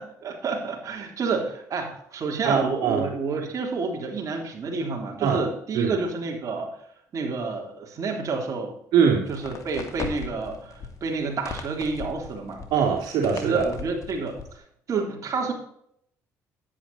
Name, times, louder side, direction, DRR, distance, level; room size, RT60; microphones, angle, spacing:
voice 1, 0.0-6.7 7.1-8.8 9.3-12.6 13.4-14.6 14.9-15.5, right 4 dB, 50° right, 0 dB, 3.6 m, -29 dB
voice 2, 2.4-3.0 5.2-5.4 5.7-5.9 8.9-9.3 12.7-13.7, right 6 dB, 75° right, 0 dB, 3.0 m, -22 dB
sound 1, 9.2-14.6, left 5 dB, 50° left, 2.7 m, -39 dB
11.0 x 10.0 x 4.3 m, 0.69 s
supercardioid pair, 75°, 7 cm